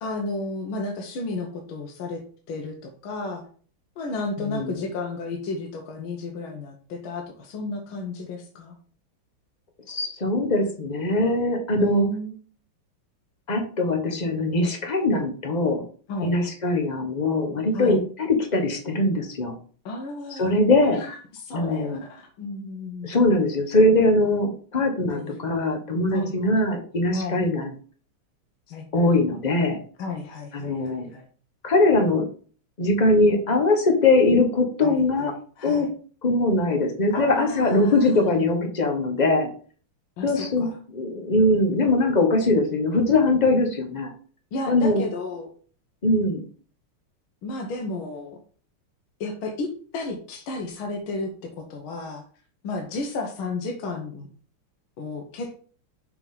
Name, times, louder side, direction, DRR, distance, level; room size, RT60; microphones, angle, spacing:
voice 1, 0.0-3.4 4.0-8.8 11.8-12.4 16.1-16.4 17.7-18.0 19.9-20.5 20.9-23.1 25.1-25.3 26.1-26.5 27.1-27.4 28.7-29.1 30.0-31.3 34.8-35.9 37.1-38.3 40.2-40.8 44.5-45.5 47.4-48.4 49.2-51.3 51.6-52.2 52.6-54.3 55.0-55.6, left 3 dB, 70° left, 2 dB, 1.7 m, -33 dB
voice 2, 9.9-12.1 13.5-15.8 16.2-19.5 20.3-21.0 21.5-22.0 23.0-27.7 28.9-29.8 30.5-31.1 31.6-32.3 32.8-35.3 35.6-35.9 36.2-39.5 40.2-40.7 40.9-44.1 44.7-45.0 46.0-46.5, left 2 dB, 40° left, 4 dB, 0.6 m, -21 dB
6.0 x 3.6 x 5.4 m, 0.43 s
omnidirectional pair, 2.4 m